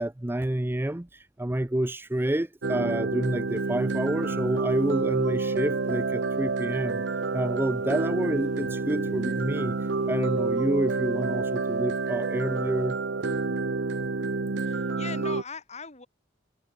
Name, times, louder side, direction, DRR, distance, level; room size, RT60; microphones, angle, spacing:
voice 1, 0.0-7.0 7.3-9.7 10.1-13.0, right 1 dB, 10° right, 0.5 m, -28 dB
sound 1, 2.6-15.4, right 3 dB, 70° right, 0.8 m, -28 dB
sound 2, 3.5-12.9, right 3 dB, 40° right, 7.4 m, -67 dB
voice 2, 14.6-16.1, left 4 dB, 35° left, 5.9 m, -40 dB
head